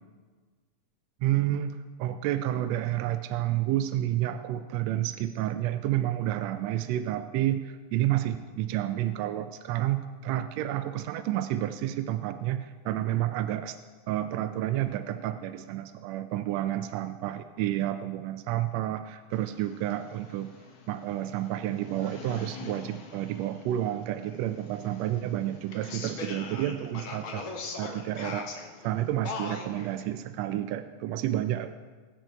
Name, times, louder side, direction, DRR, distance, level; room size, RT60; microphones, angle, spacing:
voice 1, 1.2-13.8 14.1-20.5 20.9-27.4 27.8-31.7, right 13 dB, 80° right, 10 dB, 1.5 m, -30 dB
sound 1, 19.3-30.0, left 4 dB, 55° left, 1.7 m, -42 dB
20.0 x 9.0 x 4.5 m, 1.4 s
omnidirectional pair, 3.5 m